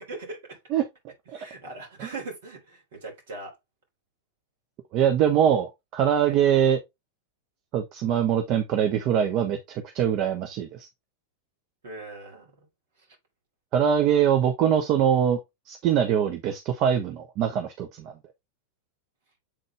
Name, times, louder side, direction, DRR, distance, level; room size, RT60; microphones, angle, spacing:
voice 1, 0.1-0.6 1.3-3.6 6.2-6.4 11.8-12.7 13.0-13.2, right 3 dB, 55° right, 3.4 m, -40 dB
voice 2, 4.9-6.8 7.7-10.9 13.7-15.4 15.7-18.1, right 9 dB, 40° right, 0.9 m, -23 dB
7.6 x 4.0 x 3.3 m
figure-of-eight pair, 90°, 0 cm